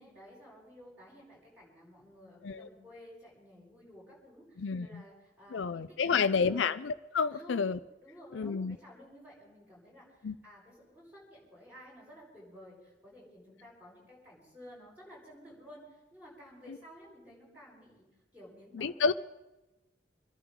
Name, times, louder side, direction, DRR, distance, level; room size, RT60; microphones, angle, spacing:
voice 1, 0.0-6.7 7.3-7.6 8.0-18.1 18.3-19.0, equal, 10° right, -6 dB, 7.6 m, -54 dB
voice 2, 4.6-5.0 5.5-7.8 8.3-8.8 10.2-10.3 16.7-16.8 18.7-19.1, left 5 dB, 80° left, 12 dB, 0.5 m, -30 dB
28.5 x 11.0 x 3.7 m, 1.0 s
head